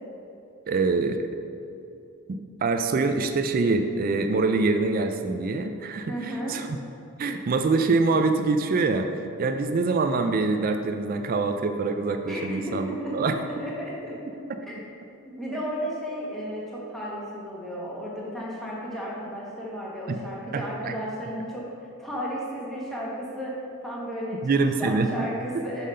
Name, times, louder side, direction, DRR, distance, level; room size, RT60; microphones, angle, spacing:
voice 1, 0.7-1.3 2.3-6.7 7.2-9.1 9.4-12.9 13.1-13.3 20.1-20.2 20.5-20.9 24.4-25.1, right 3 dB, 40° right, 6 dB, 0.4 m, -25 dB
voice 2, 6.1-6.6 12.3-14.4 14.7-14.8 15.4-23.6 23.8-24.4 24.8-25.9, equal, ahead, -6 dB, 1.1 m, -34 dB
5.6 x 5.0 x 5.5 m, 2.7 s
head